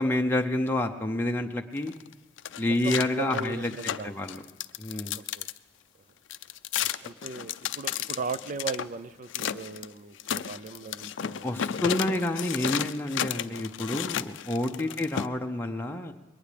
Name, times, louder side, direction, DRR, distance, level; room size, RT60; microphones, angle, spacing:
voice 1, 0.0-1.9 2.6-3.7 4.0-4.4 4.8-5.2 11.4-16.1, left 1 dB, 10° left, 3 dB, 0.6 m, -28 dB
sound 1, 1.8-5.6 6.3-8.9 9.3-9.9 10.2-15.3, left 9 dB, 70° left, 0.4 m, -33 dB
voice 2, 2.7-4.1 5.1-5.5 7.0-12.0 14.8-15.0, right 4 dB, 40° right, 14 dB, 0.5 m, -38 dB
21.5 x 18.0 x 3.4 m, 1.1 s
head